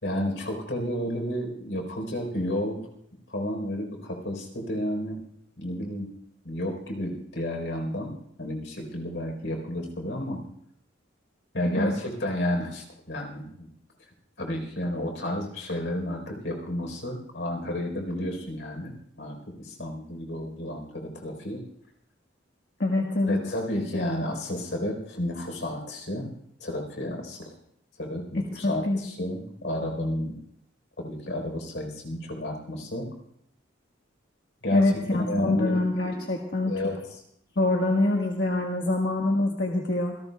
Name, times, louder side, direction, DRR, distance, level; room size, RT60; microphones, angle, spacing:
voice 1, 0.0-2.8 3.3-5.2 5.6-6.1 6.4-8.1 8.4-10.4 11.5-13.7 14.4-21.6 23.3-26.3 26.6-27.4 28.0-30.3 31.0-33.1 34.6-36.2 36.7-37.0, left 1 dB, 75° left, 1 dB, 4.1 m, -31 dB
voice 2, 22.8-23.4 28.3-29.3 34.7-36.9 37.5-40.1, left 2 dB, 55° left, 0 dB, 1.5 m, -25 dB
27.5 x 18.0 x 2.3 m, 0.72 s
head